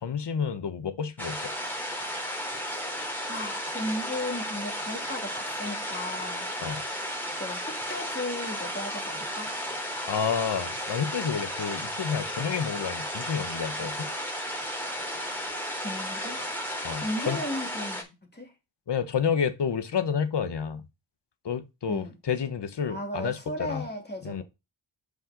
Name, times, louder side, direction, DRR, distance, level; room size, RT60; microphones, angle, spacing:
voice 1, 0.0-1.5 6.6-6.8 10.1-14.1 16.8-17.4 18.9-20.8 21.4-23.8 24.2-24.4, left 7 dB, 55° left, 1.1 m, -30 dB
sound 1, 1.2-18.0, equal, 5° left, 2.8 m, -34 dB
voice 2, 3.3-6.5 7.4-9.6 15.2-15.5 15.7-16.4 16.9-18.5 21.9-22.2 22.9-24.4, left 1 dB, 20° left, 2.9 m, -36 dB
5.7 x 5.5 x 5.0 m
cardioid pair, 55°, 49 cm